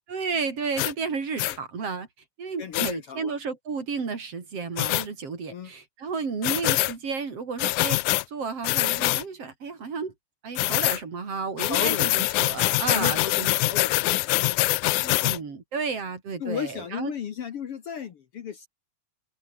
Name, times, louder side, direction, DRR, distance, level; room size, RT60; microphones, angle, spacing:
voice 1, 0.1-2.1 2.4-10.1 10.4-13.5 15.0-17.1, right 5 dB, 50° right, 4.4 m, -32 dB
sound 1, 0.8-0.9 1.4-1.6 2.7-2.9 4.8-5.1 6.4-6.9 7.6-8.2 8.6-9.2 10.6-11.0 11.6-15.4, left 20 dB, 90° left, 2.1 m, -24 dB
voice 2, 2.6-3.3 5.5-5.7 11.6-14.8 16.4-18.7, left 8 dB, 55° left, 2.0 m, -35 dB
open air
omnidirectional pair, 3.5 m